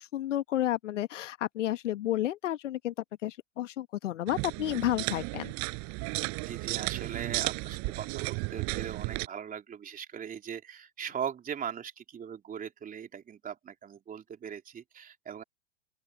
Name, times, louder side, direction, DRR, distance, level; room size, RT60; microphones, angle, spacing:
voice 1, 0.0-2.9 3.2-5.5, left 13 dB, 70° left, 1.5 m, -31 dB
sound 1, 4.3-9.3, right 31 dB, 45° right, 7.9 m, -34 dB
voice 2, 6.4-15.4, right 8 dB, 20° right, 3.4 m, -40 dB
open air
hypercardioid pair, 105°, 38 cm